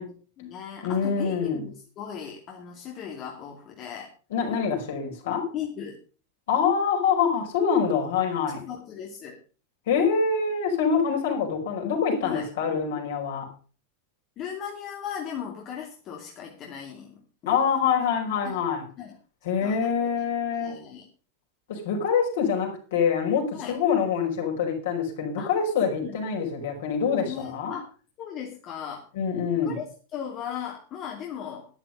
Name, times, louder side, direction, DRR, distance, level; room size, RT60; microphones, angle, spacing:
voice 1, 0.0-4.1 5.2-6.0 8.7-9.4 12.2-12.5 14.4-17.2 18.4-18.6 19.0-19.2 19.6-19.9 20.6-21.1 23.5-23.7 25.4-25.5 26.0-26.2 26.4-26.5 27.2-27.9 28.2-29.0 29.6-29.8 30.1-31.7, left 8 dB, 35° left, 0 dB, 2.6 m, -37 dB
voice 2, 0.8-1.7 4.3-5.5 6.5-8.6 9.9-13.5 17.5-18.9 19.4-20.7 21.7-27.7 29.2-29.8, left 6 dB, 55° left, 1 dB, 5.2 m, -25 dB
13.0 x 11.0 x 5.4 m, 0.37 s
figure-of-eight pair, 90°, 0 cm